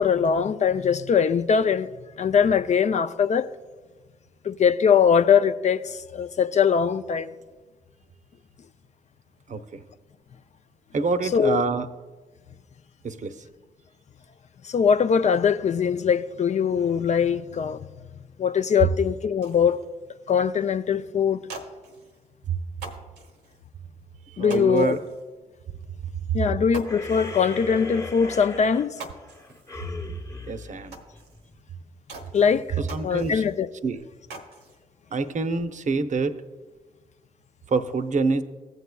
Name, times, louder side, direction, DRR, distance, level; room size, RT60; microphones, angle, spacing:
voice 1, 0.0-1.9 2.2-3.5 4.4-7.3 11.2-11.6 14.6-17.8 18.4-19.8 20.3-21.4 24.4-25.0 26.3-29.0 32.3-33.7, left 7 dB, 45° left, 0.4 m, -22 dB
voice 2, 9.5-9.8 10.9-11.9 13.0-13.3 24.4-25.0 30.5-31.0 32.9-33.4 33.8-34.0 35.1-36.4 37.7-38.4, right 4 dB, 45° right, 0.7 m, -26 dB
sound 1, 19.4-19.8 20.4-20.6 20.8-20.9 21.3-22.3 22.7-23.7 24.5-25.3 25.7-25.8 26.2-26.3 26.7-27.7 28.4-28.5 28.8-29.9 30.2-30.3 30.9-31.6 32.1-33.7 34.0-34.8 35.2-35.8, right 3 dB, 85° right, 1.1 m, -44 dB
sound 2, 26.8-31.6, left 2 dB, 20° left, 1.0 m, -37 dB
15.0 x 8.1 x 2.3 m
hypercardioid pair, 40°, 17 cm